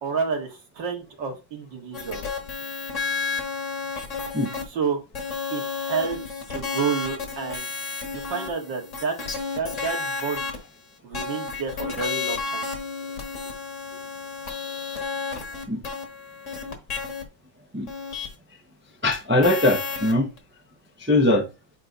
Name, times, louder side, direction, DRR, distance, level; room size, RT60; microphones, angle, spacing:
voice 1, 0.0-2.2 4.7-5.0 5.5-6.2 6.5-7.7 8.1-9.2 9.5-10.6 11.0-12.7, right 5 dB, 70° right, 2.5 m, -29 dB
sound 1, 1.9-4.6 5.1-10.6 11.1-17.2 17.9-18.3 19.4-20.4, left 5 dB, 45° left, 1.5 m, -32 dB
voice 2, 19.0-20.3 21.0-21.5, left 1 dB, 15° right, 0.4 m, -21 dB
8.7 x 3.0 x 3.9 m
omnidirectional pair, 2.1 m